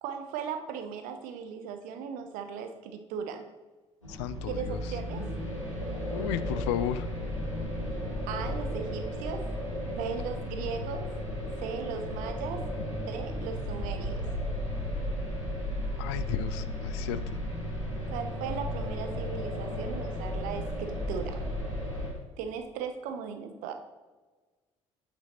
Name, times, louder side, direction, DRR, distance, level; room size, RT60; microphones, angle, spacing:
voice 1, 0.0-3.4 4.5-5.2 8.3-9.5 9.9-11.1 11.6-12.6 13.0-14.2 18.1-21.4 22.4-23.7, right 7 dB, 60° right, 7 dB, 0.9 m, -37 dB
sound 1, 4.0-22.1, equal, 90° left, 1.7 m, -34 dB
voice 2, 4.1-4.8 6.1-7.1 16.0-17.2, left 11 dB, 70° left, 14 dB, 0.4 m, -33 dB
8.7 x 5.3 x 4.3 m, 1.3 s
figure-of-eight pair, 50°, 15 cm